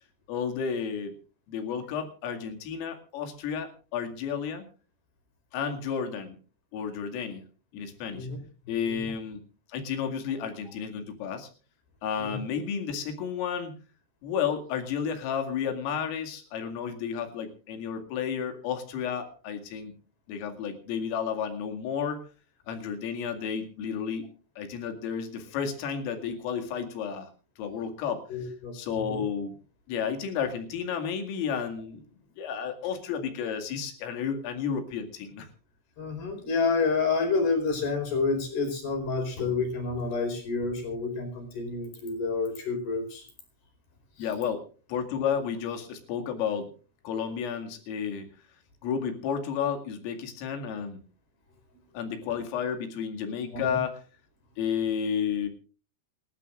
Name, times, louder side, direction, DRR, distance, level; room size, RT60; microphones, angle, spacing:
voice 1, 0.3-1.2 1.5-4.6 5.5-6.4 6.7-7.4 7.7-8.3 8.7-9.4 9.7-11.5 12.0-13.7 14.2-19.9 20.3-22.2 22.7-24.3 24.6-27.3 27.6-29.5 29.9-32.0 32.4-35.5 44.2-46.7 47.0-48.3 48.8-51.0 51.9-54.0 54.6-55.5, left 7 dB, 85° left, 5 dB, 4.9 m, -32 dB
voice 2, 28.3-29.2 36.0-43.3 53.5-53.8, left 4 dB, 50° left, 5 dB, 6.1 m, -29 dB
27.5 x 12.5 x 2.5 m, 0.37 s
omnidirectional pair, 5.7 m